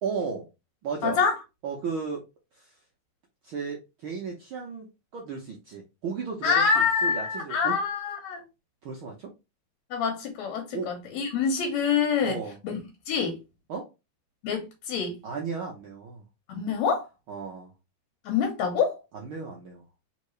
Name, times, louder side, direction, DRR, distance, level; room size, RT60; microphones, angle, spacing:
voice 1, 0.0-0.5 0.8-1.2 1.6-2.2 2.5-2.7 3.4-4.9 5.1-7.7 8.8-9.3 10.7-10.9 12.2-12.6 13.7-13.9 15.2-16.2 17.3-17.7 19.1-19.8, right 5 dB, 75° right, 1.2 m, -34 dB
voice 2, 1.0-1.4 6.4-8.4 9.9-13.4 14.4-15.2 16.5-17.1 18.2-19.0, left 6 dB, 70° left, 2.1 m, -26 dB
4.3 x 3.7 x 3.1 m
omnidirectional pair, 3.5 m